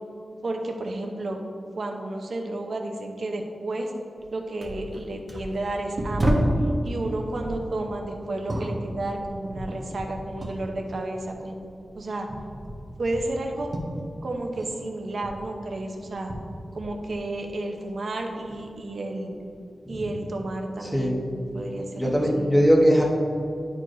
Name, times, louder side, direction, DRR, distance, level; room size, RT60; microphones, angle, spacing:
voice 1, 0.4-1.4 1.7-3.9 4.3-6.4 6.8-11.5 11.9-12.3 13.0-13.7 14.2-16.3 16.7-19.3 19.9-22.7, right 2 dB, 65° right, 2 dB, 0.8 m, -32 dB
sound 1, 4.2-4.3 4.6-6.7 7.3-10.7 10.9-14.8 15.0-17.4 17.8-18.5 19.3-19.5, right 1 dB, 45° right, 1.0 m, -32 dB
voice 2, 22.0-23.0, equal, 5° left, -2 dB, 1.1 m, -20 dB
10.5 x 4.7 x 2.6 m, 2.6 s
wide cardioid pair, 125°, 0 cm